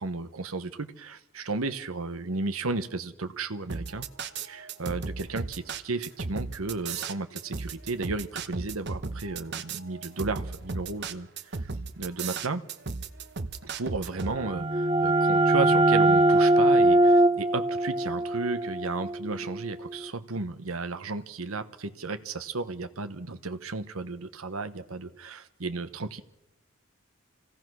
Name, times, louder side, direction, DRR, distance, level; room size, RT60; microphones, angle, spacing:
voice 1, 0.0-4.1 4.4-12.6 13.7-26.2, right 3 dB, 85° right, 10 dB, 1.2 m, -34 dB
sound 1, 3.7-14.4, right 4 dB, 55° right, 1.0 m, -35 dB
sound 2, 14.2-19.7, right 2 dB, 25° right, 0.8 m, -22 dB
26.5 x 17.0 x 6.3 m, 0.88 s
head